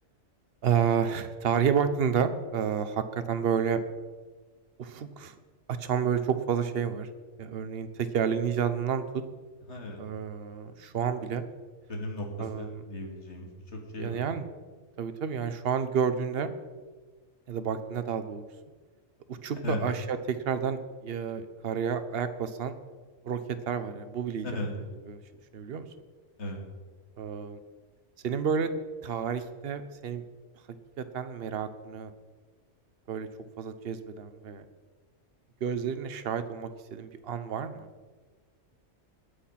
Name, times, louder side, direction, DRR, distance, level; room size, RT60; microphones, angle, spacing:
voice 1, 0.6-3.8 4.8-5.3 5.8-7.1 7.4-9.2 10.0-11.4 12.4-12.8 14.0-14.4 15.0-16.5 17.5-18.4 19.3-22.7 23.2-23.4 23.7-24.6 25.1-25.2 25.5-25.9 27.2-27.6 28.2-28.7 29.0-30.2 31.0-32.1 33.1-33.3 33.6-34.6 35.6-37.9, right 7 dB, 55° right, 10 dB, 1.0 m, -30 dB
voice 2, 9.7-10.0 11.9-14.2 19.6-19.8 24.4-24.7 26.4-26.6, left 1 dB, 65° left, 1 dB, 2.6 m, -36 dB
20.0 x 6.7 x 5.8 m, 1.4 s
omnidirectional pair, 1.3 m